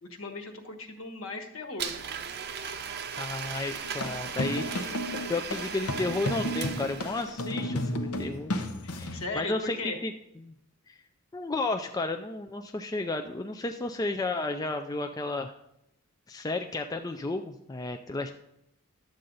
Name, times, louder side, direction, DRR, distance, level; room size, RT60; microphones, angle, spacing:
voice 1, 0.0-1.9 2.6-2.7 8.8-10.0, left 3 dB, 70° left, 5 dB, 1.4 m, -37 dB
Domestic sounds home sounds, 1.8-7.4, right 7 dB, 50° right, 0.6 m, -37 dB
voice 2, 3.2-4.9 5.3-8.5 9.0-9.8 10.0-10.1 10.4-10.5 10.9-11.0 11.3-15.5 16.3-18.3, left 2 dB, 15° left, 5 dB, 0.3 m, -32 dB
sound 1, 3.8-9.3, left 1 dB, 90° left, 0.9 m, -33 dB
11.5 x 7.6 x 4.0 m, 0.81 s
head